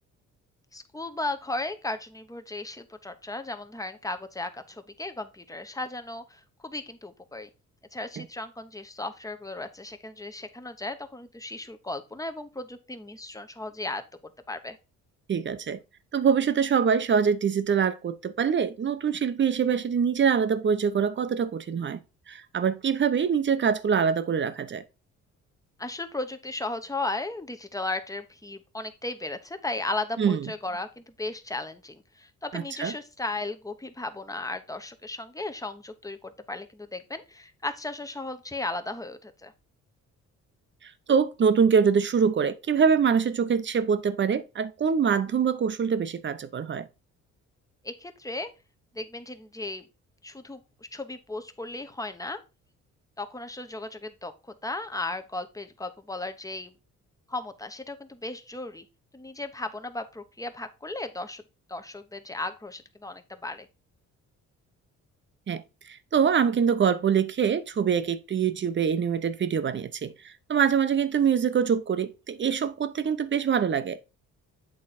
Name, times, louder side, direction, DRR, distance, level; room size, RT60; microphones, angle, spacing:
voice 1, 0.7-7.5 7.9-14.0 14.5-14.8 25.8-39.5 47.8-48.5 48.9-49.8 50.2-50.6 50.9-52.4 53.2-54.3 54.6-56.7 57.3-58.8 59.1-61.4 61.7-63.7, left 2 dB, 10° left, 0.9 m, -35 dB
voice 2, 15.3-15.8 16.1-22.0 22.3-24.8 30.2-30.5 32.5-32.9 40.8-46.9 65.5-65.6 65.9-74.1, right 7 dB, 40° right, 0.8 m, -24 dB
8.5 x 3.8 x 4.2 m
cardioid pair, 90°, 30 cm